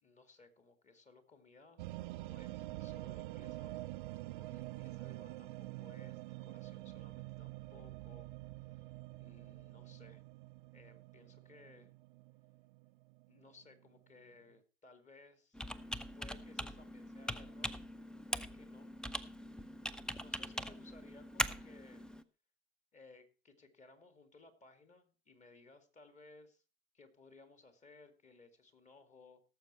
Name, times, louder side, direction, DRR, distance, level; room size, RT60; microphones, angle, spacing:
voice 1, 0.0-3.9 4.3-8.3 8.6-10.2 10.7-11.9 13.3-15.6 16.1-17.8 18.1-18.9 20.1-22.1 22.9-26.6 26.9-29.4, left 3 dB, 25° left, 9 dB, 2.2 m, -61 dB
sound 1, 1.8-14.3, right 19 dB, 55° right, 0.5 m, -47 dB
Computer keyboard, 15.5-22.2, equal, 5° left, 0.6 m, -42 dB
17.0 x 7.4 x 4.4 m, 0.34 s
figure-of-eight pair, 75°, 30 cm